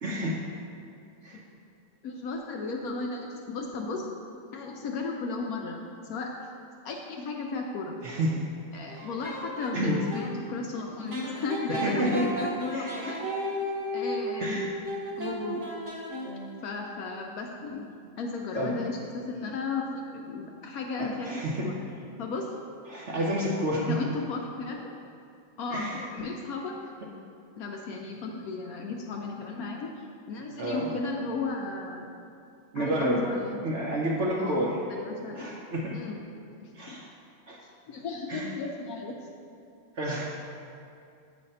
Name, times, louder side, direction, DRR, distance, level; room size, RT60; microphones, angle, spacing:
voice 1, 0.0-0.4 1.2-1.4 8.0-8.4 8.9-9.1 9.7-10.0 11.7-12.3 12.7-13.1 14.4-14.7 18.5-18.7 21.0-21.7 22.9-24.0 25.7-26.0 30.6-30.9 32.7-33.2 33.6-34.8 35.3-36.0 36.7-37.1 37.5-37.6 38.3-38.5 40.0-40.2, right 1 dB, 60° right, -3 dB, 0.7 m, -30 dB
voice 2, 2.0-4.0 4.5-5.8 6.1-6.3 6.8-8.0 8.7-13.2 13.9-14.6 15.2-15.6 16.6-17.9 18.2-21.8 22.2-22.5 23.8-24.9 25.6-26.7 27.6-32.1 32.7-33.6 34.4-35.5 35.9-36.2 36.6-37.0 37.9-39.1, left 3 dB, 70° left, 1 dB, 0.9 m, -35 dB
sound 1, 8.9-10.3 11.1-16.6, equal, 40° right, 1.1 m, -34 dB
8.7 x 3.2 x 5.4 m, 2.5 s
omnidirectional pair, 2.0 m